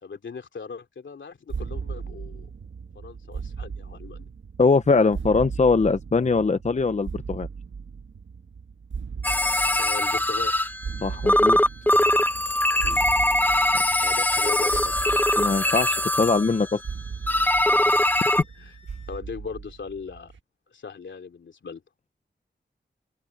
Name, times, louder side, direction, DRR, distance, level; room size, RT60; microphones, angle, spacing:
voice 1, 0.0-2.5 2.9-4.3 9.8-10.5 12.7-13.3 14.0-15.2 17.7-18.2 18.6-18.7 19.1-20.3 20.7-21.8, left 5 dB, 80° left, 3.0 m, -39 dB
sound 1, 1.5-20.4, right 5 dB, 85° right, 1.4 m, -37 dB
voice 2, 4.6-7.5 11.0-11.6 13.9-14.1 15.4-16.8, left 4 dB, 40° left, 0.7 m, -22 dB
sound 2, 9.2-11.0 11.3-16.8 17.3-18.4, left 1 dB, 10° left, 1.1 m, -22 dB
Wind instrument woodwind instrument, 15.7-19.2, left 2 dB, 30° right, 4.9 m, -60 dB
open air
wide cardioid pair, 65°, 19 cm